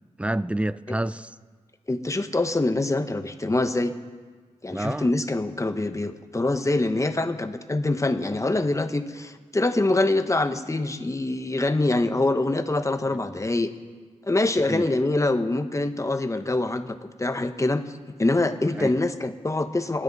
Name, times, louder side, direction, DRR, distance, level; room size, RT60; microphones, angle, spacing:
voice 1, 0.2-1.4 4.7-5.1 13.1-13.2 14.6-14.9 18.8-18.9, right 1 dB, 10° right, 0.5 m, -28 dB
voice 2, 1.9-3.9 4.6-13.7 14.2-17.8 18.2-20.0, left 2 dB, 25° left, 1.1 m, -24 dB
27.5 x 10.0 x 4.1 m
cardioid pair, 60°, 12 cm